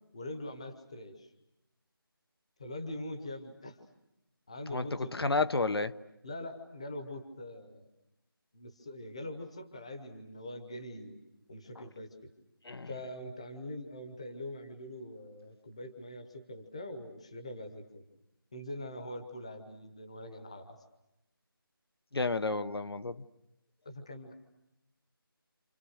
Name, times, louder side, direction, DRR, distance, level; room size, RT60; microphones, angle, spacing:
voice 1, 0.1-1.3 2.6-3.8 4.5-5.5 6.2-7.9 8.5-11.2 11.5-12.3 12.9-18.0 18.5-20.8 23.8-24.3, left 1 dB, 15° left, 7 dB, 0.9 m, -43 dB
voice 2, 4.7-5.9 12.6-12.9 22.1-23.2, left 3 dB, 85° left, 12 dB, 0.9 m, -31 dB
29.5 x 28.0 x 6.4 m, 0.88 s
figure-of-eight pair, 180°, 12 cm